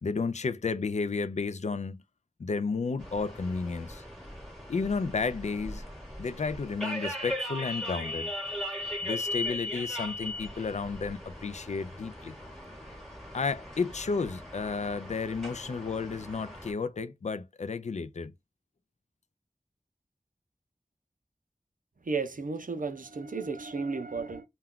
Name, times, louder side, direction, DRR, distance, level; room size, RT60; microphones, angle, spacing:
voice 1, 0.0-2.0 2.4-4.0 4.7-5.8 6.2-8.3 9.0-12.4 13.3-18.3, left 4 dB, 50° left, 0.4 m, -32 dB
sound 1, 3.0-16.7, left 1 dB, ahead, 1.2 m, -38 dB
voice 2, 22.0-24.4, right 4 dB, 65° right, 0.5 m, -33 dB
2.3 x 2.2 x 3.5 m
wide cardioid pair, 40°, 15 cm